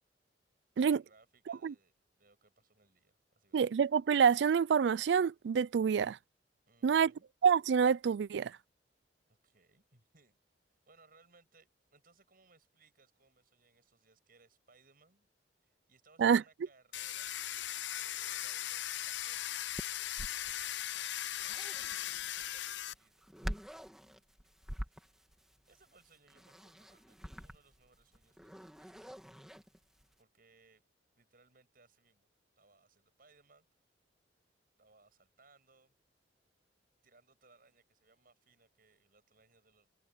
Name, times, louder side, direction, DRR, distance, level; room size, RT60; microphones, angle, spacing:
voice 1, 0.8-3.6 6.7-7.3 9.3-10.4 10.9-15.3 15.6-17.3 17.9-19.9 20.9-23.4 24.4-25.3 25.7-29.1 30.2-30.8 31.2-32.3 32.6-33.7 34.8-35.9 37.0-39.9, right 3 dB, 55° right, 7.9 m, -67 dB
voice 2, 3.5-6.2 6.8-7.1 7.4-8.5 16.2-16.4, right 7 dB, 70° right, 0.3 m, -27 dB
Domestic sounds home sounds, 16.9-22.9, left 12 dB, 85° left, 0.6 m, -38 dB
sound 1, 19.8-30.1, equal, 5° right, 2.5 m, -46 dB
head